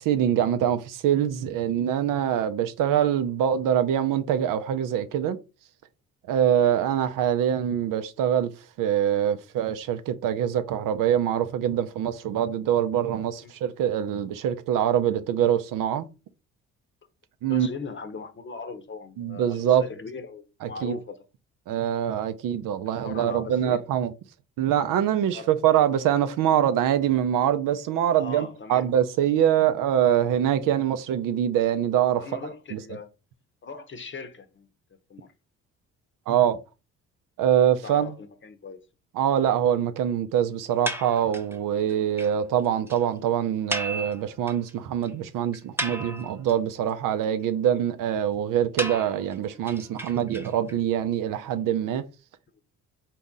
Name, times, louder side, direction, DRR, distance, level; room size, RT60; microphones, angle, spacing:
voice 1, 0.0-5.4 6.3-8.5 8.8-16.0 17.4-17.7 19.2-19.8 20.6-21.0 21.7-24.1 24.6-32.2 32.7-32.8 36.3-36.6 37.4-38.1 39.2-52.0, right 10 dB, 70° right, 0.6 m, -24 dB
voice 2, 17.5-21.2 22.9-23.8 25.3-25.6 28.2-28.9 30.6-30.8 32.2-33.1 33.6-34.7 35.1-35.3 37.8-38.8, left 4 dB, 35° left, 0.8 m, -39 dB
sound 1, 40.8-41.6 41.9-42.0 42.2-42.3 42.6-42.7 42.9-43.0 43.7-44.7 45.0-45.1 45.5-46.5 48.8-50.7, right 1 dB, 5° right, 0.8 m, -33 dB
4.1 x 2.8 x 3.6 m
supercardioid pair, 60°, 34 cm